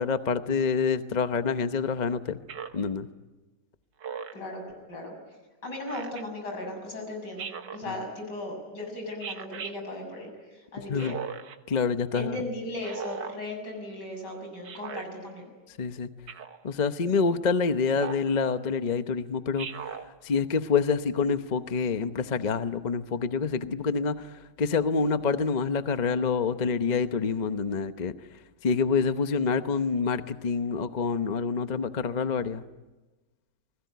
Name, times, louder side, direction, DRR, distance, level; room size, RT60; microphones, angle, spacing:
voice 1, 0.0-2.4 2.7-3.1 10.9-11.2 11.7-12.4 15.8-16.1 16.6-19.7 20.2-28.1 28.6-32.6, left 5 dB, 35° left, 10 dB, 0.8 m, -27 dB
Speech synthesizer, 2.5-2.9 4.0-4.5 5.9-6.2 7.4-7.8 9.2-9.7 11.0-11.6 12.8-13.4 14.6-15.1 16.3-16.6 17.9-18.3 19.6-20.1, right 7 dB, 90° right, 1.9 m, -38 dB
voice 2, 5.6-11.2 12.1-15.4, left 1 dB, 80° left, 3 dB, 7.6 m, -37 dB
29.0 x 21.0 x 9.4 m, 1.2 s
omnidirectional pair, 1.8 m